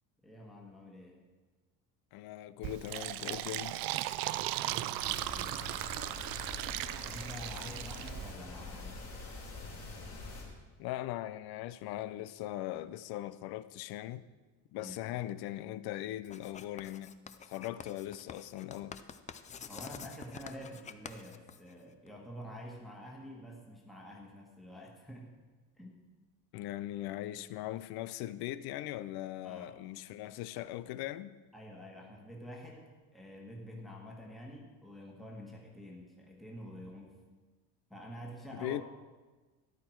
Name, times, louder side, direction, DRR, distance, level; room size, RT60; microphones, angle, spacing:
voice 1, 0.2-1.2 4.6-5.9 7.1-9.0 14.8-15.0 19.7-25.3 25.8-26.0 29.4-29.8 31.5-37.2 37.9-38.8, equal, ahead, 1.5 m, -48 dB
voice 2, 2.1-3.8 10.8-14.3 14.7-17.1 17.4-19.0 26.5-31.3 38.5-38.8, left 14 dB, 75° left, 0.6 m, -40 dB
Fill (with liquid), 2.6-8.3, right 15 dB, 65° right, 0.5 m, -37 dB
sound 1, 5.0-10.4, left 3 dB, 40° left, 3.4 m, -45 dB
Writing, 16.2-22.1, left 7 dB, 20° left, 0.3 m, -48 dB
13.0 x 10.5 x 4.6 m
cardioid pair, 160°, 38 cm